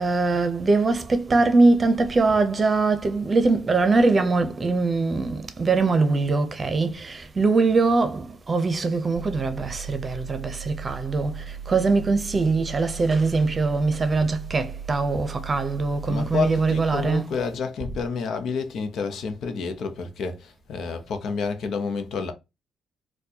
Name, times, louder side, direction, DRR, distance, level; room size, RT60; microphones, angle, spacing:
voice 1, 0.0-17.4, right 3 dB, 30° right, 0.7 m, -22 dB
sound 1, 9.2-17.2, right 7 dB, 75° right, 0.3 m, -37 dB
voice 2, 16.1-22.3, left 5 dB, 70° left, 0.7 m, -29 dB
4.3 x 2.3 x 2.8 m
cardioid pair, 90°, 0 cm